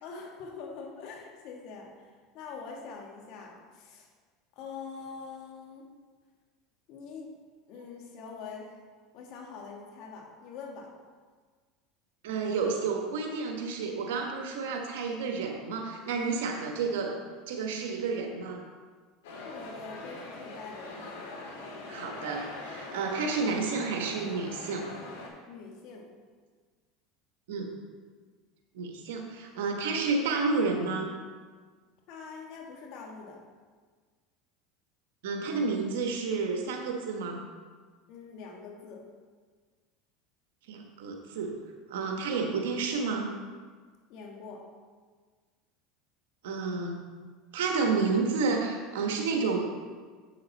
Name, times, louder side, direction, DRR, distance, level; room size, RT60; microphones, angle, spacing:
voice 1, 0.0-4.1 4.5-5.9 6.9-7.4 7.7-8.8 9.1-10.9 19.4-21.0 25.5-26.2 32.1-33.4 38.1-39.0 44.1-44.6, left 5 dB, 60° left, 0 dB, 1.7 m, -44 dB
voice 2, 12.2-17.2 17.5-18.7 21.9-24.9 27.5-27.7 28.7-31.1 35.2-37.5 40.7-41.5 41.9-43.3 46.4-47.1 47.5-49.6, right 4 dB, 85° right, 3 dB, 1.3 m, -30 dB
sound 1, 19.2-25.3, left 2 dB, 85° left, 1.8 m, -42 dB
7.6 x 6.6 x 4.1 m, 1.5 s
supercardioid pair, 110°, 0 cm